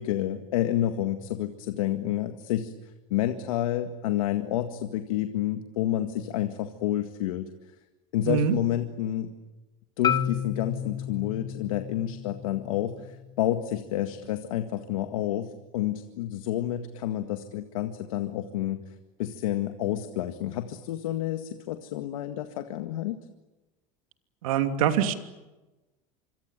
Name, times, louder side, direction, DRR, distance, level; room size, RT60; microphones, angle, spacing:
voice 1, 0.0-2.7 3.1-7.5 8.1-9.3 10.0-18.8 19.2-23.2, left 12 dB, 90° left, 7 dB, 1.9 m, -29 dB
voice 2, 8.2-8.5 24.4-25.1, right 9 dB, 90° right, 7 dB, 2.9 m, -24 dB
Marimba xylophone, 10.0-14.2, left 9 dB, 25° left, 1.1 m, -33 dB
26.5 x 24.5 x 9.1 m, 1.1 s
supercardioid pair, 120°, 17 cm